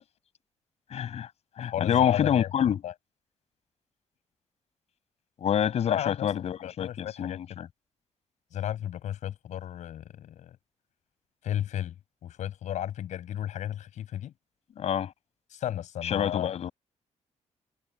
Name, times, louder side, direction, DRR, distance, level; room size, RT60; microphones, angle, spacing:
voice 1, 0.9-1.3 1.6-2.8 5.4-7.7 14.8-15.1 16.0-16.7, left 9 dB, 60° left, 6.7 m, -27 dB
voice 2, 1.6-2.5 2.8-2.9 5.9-7.4 8.5-10.6 11.4-11.9 12.2-14.3 15.5-16.5, left 11 dB, 80° left, 7.8 m, -34 dB
wide cardioid pair, 160°, 12 cm